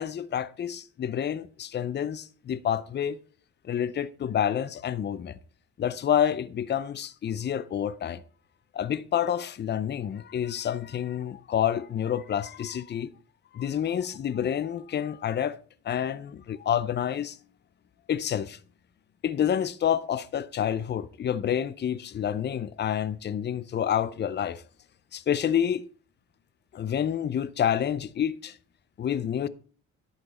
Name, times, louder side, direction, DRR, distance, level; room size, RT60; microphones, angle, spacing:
voice 1, 0.0-3.2 3.6-5.4 5.8-8.2 8.7-13.1 13.5-15.6 15.8-17.4 18.1-18.6 19.2-24.6 25.1-25.8 26.7-28.6 29.0-29.5, left 9 dB, 35° left, 0.5 m, -28 dB
11.0 x 5.7 x 4.2 m
cardioid pair, 90°, 30 cm